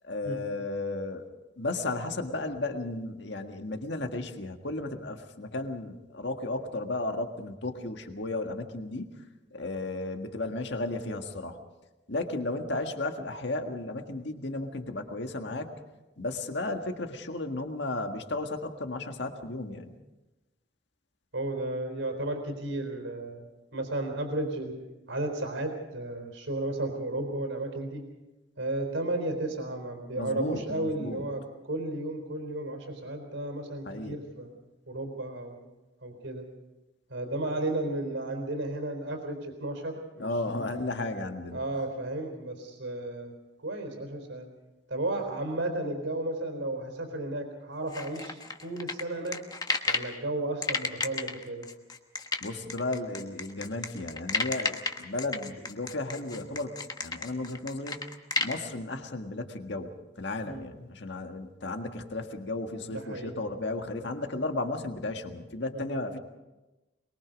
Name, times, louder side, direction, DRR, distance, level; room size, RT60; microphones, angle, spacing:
voice 1, 0.0-1.3 1.6-9.1 9.5-11.6 12.1-15.7 16.2-19.9 30.2-31.3 33.9-34.2 40.2-41.6 52.4-58.0 58.4-66.2, left 2 dB, 60° left, 5 dB, 1.8 m, -34 dB
voice 2, 21.3-24.7 25.1-28.0 28.6-34.6 34.9-35.6 36.0-36.4 37.1-40.3 40.6-40.7 41.5-43.3 43.6-44.5 44.9-49.4 49.9-51.7 60.5-60.6 62.9-63.3 65.7-66.0, right 2 dB, 75° right, 5 dB, 4.0 m, -33 dB
sound 1, 47.9-50.1 50.6-58.6, left 4 dB, 20° left, 1.2 m, -32 dB
23.0 x 22.0 x 5.2 m, 1.1 s
head